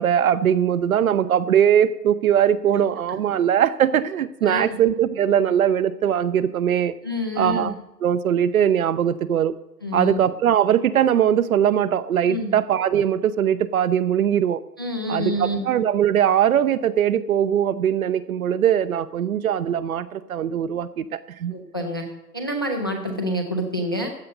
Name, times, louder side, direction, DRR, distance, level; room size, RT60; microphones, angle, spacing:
voice 1, 0.0-6.9 7.4-7.7 8.0-9.5 9.9-14.6 15.1-21.5, right 9 dB, 55° right, 14 dB, 0.8 m, -21 dB
voice 2, 4.4-4.8 7.0-7.7 9.8-10.2 12.3-12.6 14.8-15.7 21.5-22.1 22.3-24.1, equal, 15° left, 3 dB, 0.4 m, -27 dB
14.5 x 9.0 x 5.3 m, 0.90 s
hypercardioid pair, 140°, 50 cm